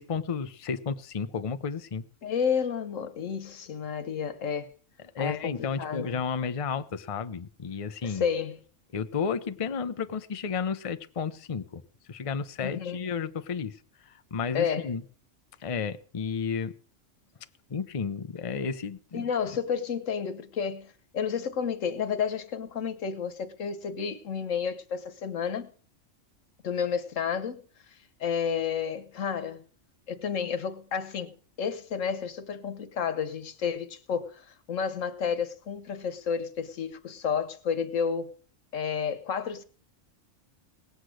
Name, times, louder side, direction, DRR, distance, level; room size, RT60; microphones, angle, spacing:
voice 1, 0.0-2.0 5.1-8.2 8.9-11.8 12.1-13.8 14.3-15.0 15.6-16.7 17.7-19.3, left 6 dB, 35° left, 0.7 m, -32 dB
voice 2, 2.2-4.7 5.2-6.2 8.0-8.6 12.6-13.1 14.5-14.9 19.1-25.7 26.6-27.6 28.2-29.6 30.1-38.3 38.7-39.6, left 7 dB, 85° left, 1.5 m, -31 dB
18.5 x 8.2 x 6.4 m
omnidirectional pair, 1.3 m